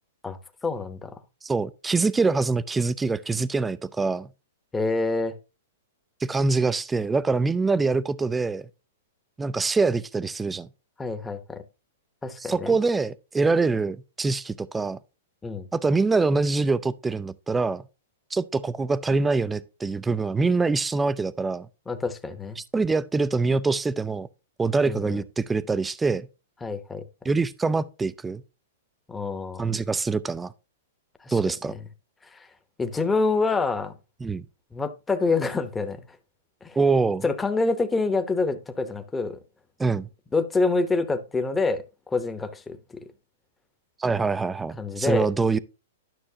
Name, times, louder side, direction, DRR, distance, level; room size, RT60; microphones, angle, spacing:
voice 1, 0.2-1.1 4.7-5.3 11.0-11.6 12.2-12.8 15.4-15.7 21.9-22.6 24.9-25.2 26.6-27.0 29.1-29.7 31.2-31.4 32.3-32.4 32.8-33.9 34.7-36.0 36.6-36.8 37.2-39.4 40.3-42.8 44.8-45.3, left 3 dB, 10° left, 0.9 m, -26 dB
voice 2, 1.4-4.3 6.2-8.7 9.4-10.7 12.4-15.0 15.7-17.8 18.3-21.7 22.6-24.3 24.6-26.3 27.2-28.4 29.6-30.5 31.3-31.8 34.2-34.4 36.8-37.2 39.8-40.1 44.0-45.6, right 4 dB, 10° right, 0.4 m, -24 dB
11.5 x 6.2 x 2.8 m
hypercardioid pair, 125°, 0 cm